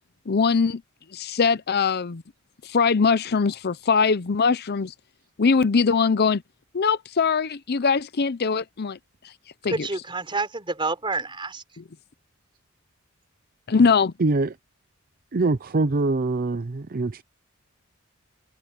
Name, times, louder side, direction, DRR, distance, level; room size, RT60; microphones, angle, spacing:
voice 1, 0.3-0.8 1.1-2.2 2.6-4.9 5.4-6.4 6.7-9.0 9.2-9.3 9.6-9.9 11.8-11.9 13.7-14.1, left 5 dB, 50° left, 0.6 m, -21 dB
voice 2, 9.7-11.6, right 3 dB, 25° right, 4.0 m, -28 dB
voice 3, 14.2-14.5 15.3-17.2, right 3 dB, 45° right, 0.6 m, -24 dB
head